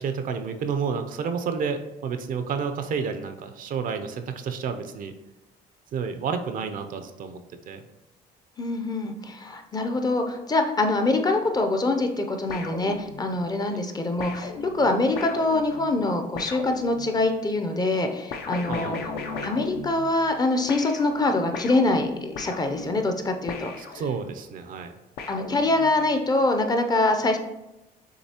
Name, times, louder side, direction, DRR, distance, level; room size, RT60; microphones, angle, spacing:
voice 1, 0.0-5.1 5.9-7.4 7.7-7.8 13.7-13.8 18.7-19.0 23.8-24.9, right 6 dB, 55° right, 8 dB, 0.5 m, -30 dB
voice 2, 8.6-19.0 19.4-23.7 25.3-27.4, left 2 dB, 25° left, 5 dB, 0.5 m, -24 dB
sound 1, 12.5-13.5 14.2-17.4 18.3-20.4 20.7-24.4 25.2-26.2, left 4 dB, 70° left, 0.6 m, -37 dB
6.5 x 2.7 x 2.8 m, 0.96 s
cardioid pair, 110°, 17 cm